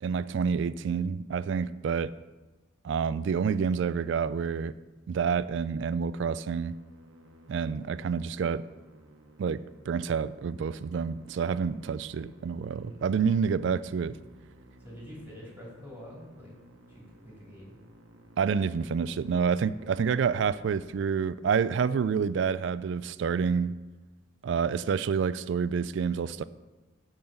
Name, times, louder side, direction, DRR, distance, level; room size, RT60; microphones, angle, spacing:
voice 1, 0.0-2.1 2.8-4.7 5.1-6.7 7.5-8.6 9.4-14.2 18.4-23.7 24.4-26.4, right 6 dB, 60° right, 16 dB, 0.3 m, -28 dB
Musical instrument, 6.2-21.0, right 1 dB, 80° right, 1.1 m, -55 dB
voice 2, 12.7-13.2 14.8-16.6 16.9-17.7 18.5-18.6 19.0-19.2, equal, 10° right, -5 dB, 2.8 m, -47 dB
8.6 x 4.0 x 6.9 m, 1.2 s
head